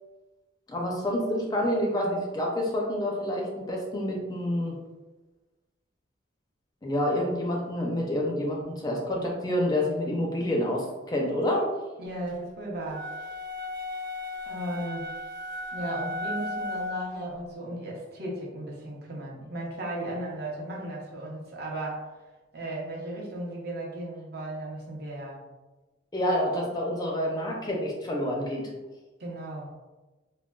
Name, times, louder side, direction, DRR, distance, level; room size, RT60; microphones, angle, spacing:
voice 1, 0.7-4.8 6.8-11.7 26.1-28.7, left 1 dB, 20° left, -1 dB, 0.4 m, -28 dB
voice 2, 12.0-13.1 14.4-15.1 15.7-22.1 22.5-25.4 29.2-29.7, right 1 dB, 55° right, -2 dB, 0.7 m, -35 dB
sound 1, 12.9-17.2, left 1 dB, 80° right, 1.0 m, -35 dB
3.7 x 2.1 x 2.2 m, 1.2 s
head